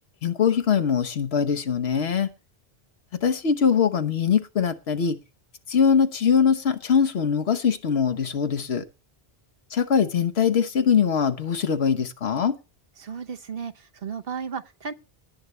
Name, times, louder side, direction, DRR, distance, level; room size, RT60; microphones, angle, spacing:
voice 1, 0.2-2.3 3.2-5.2 5.7-8.9 9.7-12.6, left 7 dB, 90° left, 1.3 m, -22 dB
voice 2, 13.0-14.9, right 6 dB, 70° right, 1.2 m, -34 dB
18.5 x 8.0 x 3.2 m
omnidirectional pair, 1.0 m